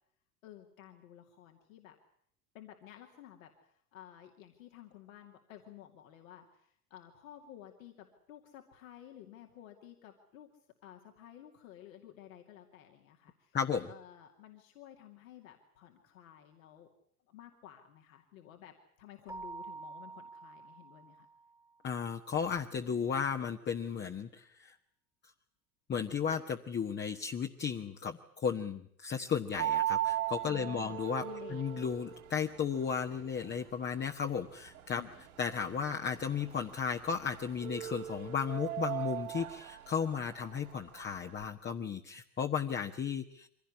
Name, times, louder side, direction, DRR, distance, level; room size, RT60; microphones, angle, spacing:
voice 1, 0.4-2.0 2.5-10.5 10.8-13.6 13.9-16.9 17.3-21.3 30.4-31.6 34.9-35.2, left 11 dB, 65° left, 3 dB, 2.6 m, -53 dB
voice 2, 13.5-13.9 21.8-24.7 25.9-31.2 31.5-35.0 35.4-43.5, left 7 dB, 25° left, 4 dB, 1.3 m, -34 dB
Keyboard (musical), 19.3-21.7, right 4 dB, 10° right, 1.9 m, -47 dB
sound 1, 29.5-41.4, right 13 dB, 75° right, 3.8 m, -39 dB
24.5 x 17.0 x 9.7 m, 0.67 s
figure-of-eight pair, 75°, 44 cm